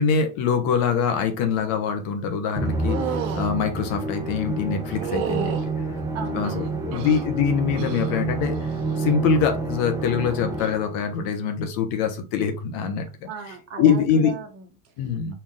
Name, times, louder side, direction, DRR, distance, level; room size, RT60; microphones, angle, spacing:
voice 1, 0.0-5.7 6.3-8.7 9.0-13.1 13.8-14.4 15.0-15.4, left 7 dB, 55° left, 6 dB, 1.2 m, -24 dB
Musical instrument, 2.6-11.0, right 3 dB, 10° right, 1.2 m, -28 dB
sound 1, 2.9-3.5 4.9-5.7 6.4-7.3 7.7-8.2 8.5-9.0 10.5-10.7, right 9 dB, 60° right, 1.1 m, -31 dB
voice 2, 6.1-7.1 13.3-15.2, right 5 dB, 35° right, 4 dB, 1.3 m, -37 dB
4.5 x 2.9 x 3.7 m, 0.32 s
hypercardioid pair, 110°, 41 cm